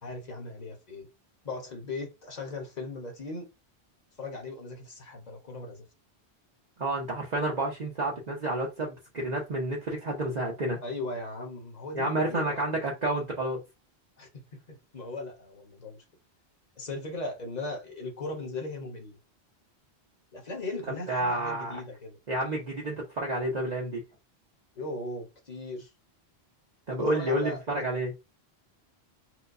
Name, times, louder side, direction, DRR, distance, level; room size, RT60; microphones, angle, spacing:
voice 1, 0.0-1.1 1.4-3.5 4.2-5.8 10.8-12.6 14.2-16.0 16.8-19.2 20.3-22.2 24.7-25.9 26.9-27.8, left 2 dB, 40° left, 1.1 m, -38 dB
voice 2, 6.8-10.8 11.9-13.6 21.1-21.8 22.3-24.0 26.9-28.1, right 1 dB, 45° right, 0.8 m, -30 dB
4.6 x 2.2 x 2.6 m
omnidirectional pair, 1.1 m